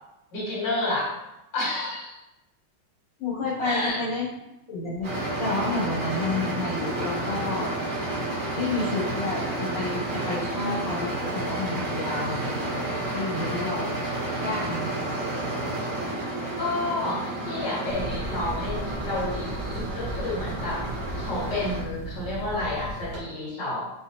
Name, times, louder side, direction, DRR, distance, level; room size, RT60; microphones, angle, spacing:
voice 1, 0.3-1.1 1.5-2.2 3.6-4.0 16.6-20.8 21.1-23.8, left 2 dB, 60° left, -8 dB, 2.3 m, -30 dB
voice 2, 3.2-4.3 4.7-5.1 5.4-7.7 8.5-14.0 14.4-14.9, left 2 dB, 80° left, -8 dB, 2.3 m, -30 dB
sound 1, 5.0-21.8, right 2 dB, 55° right, 2.2 m, -31 dB
sound 2, 17.9-23.2, right 1 dB, 80° right, 2.3 m, -35 dB
5.2 x 3.2 x 2.8 m, 0.92 s
omnidirectional pair, 2.2 m